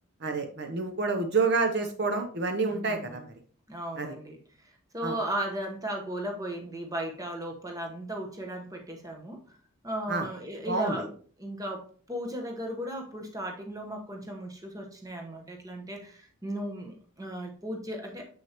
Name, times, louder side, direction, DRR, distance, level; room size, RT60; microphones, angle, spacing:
voice 1, 0.2-3.3 4.0-4.1 5.0-5.1 10.1-10.3 10.7-11.1, right 4 dB, 50° right, 6 dB, 0.7 m, -28 dB
voice 2, 2.7-3.3 3.7-4.4 4.9-9.4 9.8-11.1 11.4-18.3, right 1 dB, 15° right, 2 dB, 1.0 m, -36 dB
7.2 x 6.1 x 2.9 m, 0.43 s
head